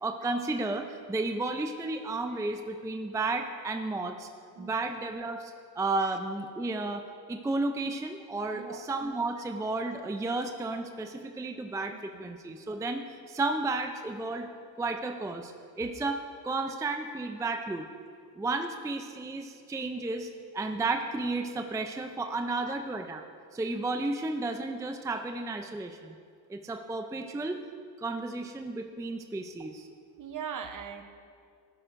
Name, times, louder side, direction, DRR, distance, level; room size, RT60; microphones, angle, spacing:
voice 1, 0.0-4.3 4.6-7.0 7.3-14.5 14.8-17.9 18.3-23.2 23.5-26.2 26.5-27.6 28.0-29.9, right 2 dB, 10° right, 5 dB, 0.4 m, -33 dB
voice 2, 4.6-4.9 6.0-6.1 8.5-8.9 11.9-12.3 30.2-31.0, right 7 dB, 45° right, 7 dB, 0.9 m, -40 dB
12.0 x 11.0 x 2.6 m, 2.3 s
cardioid pair, 80°, 44 cm